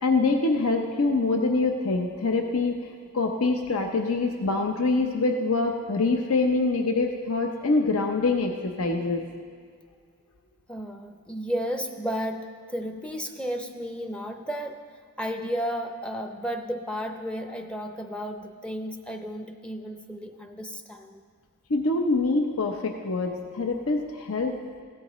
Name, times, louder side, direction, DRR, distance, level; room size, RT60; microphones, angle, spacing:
voice 1, 0.0-2.7 3.1-9.2 21.7-24.5, left 3 dB, 70° left, 3 dB, 0.8 m, -25 dB
voice 2, 10.7-14.8 15.2-21.2, equal, 5° left, 5 dB, 0.5 m, -33 dB
16.5 x 12.5 x 3.1 m, 2.2 s
head